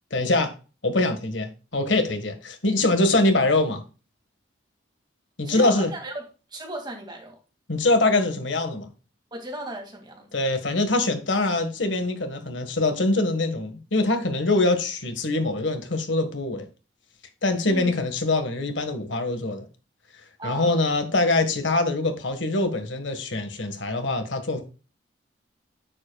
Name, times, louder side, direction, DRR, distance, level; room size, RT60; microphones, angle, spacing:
voice 1, 0.1-0.5 0.8-3.8 5.4-5.9 7.7-8.9 10.3-16.7 17.4-19.6 20.4-24.6, left 2 dB, 80° left, 1.6 m, -23 dB
voice 2, 5.4-6.2 6.5-7.4 9.3-10.3 17.7-17.9 20.4-20.9, right 1 dB, 20° right, 2.3 m, -36 dB
9.6 x 7.6 x 2.3 m
head